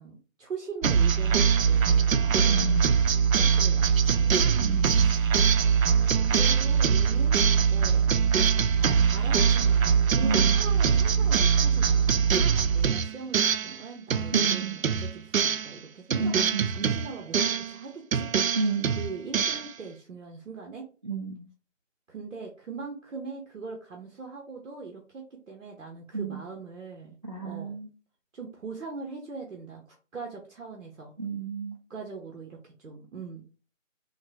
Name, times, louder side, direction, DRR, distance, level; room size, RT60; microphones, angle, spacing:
voice 1, 0.0-2.7 3.4-5.4 5.8-7.4 7.7-8.1 8.7-16.3 16.7-18.3 19.0-20.9 22.1-27.2 27.4-27.8 28.3-31.1 31.9-33.4, right 4 dB, 75° right, 1 dB, 0.9 m, -41 dB
sound 1, 0.8-13.8 14.1-15.8 16.1-17.8 18.1-19.7, right 7 dB, 90° right, 0.5 m, -23 dB
voice 2, 2.5-2.8 4.6-4.9 10.2-10.5 14.3-14.7 16.2-16.9 18.6-19.0 21.0-21.4 26.1-26.4 27.2-27.9 31.2-31.8, right 3 dB, 35° right, -2 dB, 0.4 m, -31 dB
3.7 x 2.2 x 2.7 m, 0.36 s
figure-of-eight pair, 155°, 39 cm